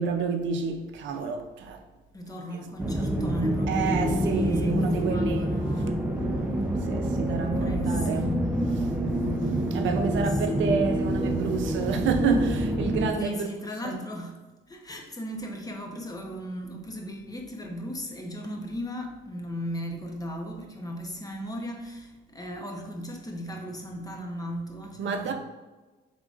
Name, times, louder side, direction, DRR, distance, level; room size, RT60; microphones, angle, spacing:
voice 1, 0.0-1.8 3.7-5.5 6.2-6.6 6.8-8.3 8.8-13.5 13.8-14.0 25.0-25.3, right 5 dB, 70° right, 0.6 m, -29 dB
voice 2, 2.1-6.0 7.3-8.4 9.5-9.6 9.8-10.6 13.2-14.4 14.7-25.3, equal, 20° left, 0.9 m, -37 dB
sound 1, 2.8-13.1, right 1 dB, 5° right, 0.6 m, -27 dB
5.2 x 3.7 x 2.5 m
cardioid pair, 90°, 20 cm